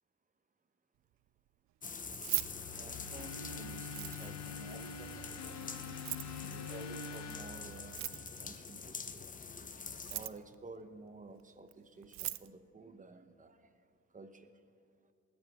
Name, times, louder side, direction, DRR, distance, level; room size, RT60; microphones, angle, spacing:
sound 1, 1.8-10.3, left 5 dB, 25° left, 0.8 m, -46 dB
Keys jangling, 2.0-3.4 3.8-4.5 5.9-6.4 7.8-8.5 9.9-10.5 11.7-11.8 12.0-12.5, right 16 dB, 70° right, 0.4 m, -39 dB
sound 2, 2.3-8.5, left 5 dB, 60° left, 1.1 m, -46 dB
voice 1, 2.7-5.3 6.4-8.0 8.4-9.2 10.1-13.7 14.1-14.5, right 3 dB, 25° right, 10 dB, 1.0 m, -52 dB
19.5 x 12.0 x 3.5 m, 2.4 s
cardioid pair, 90°, 30 cm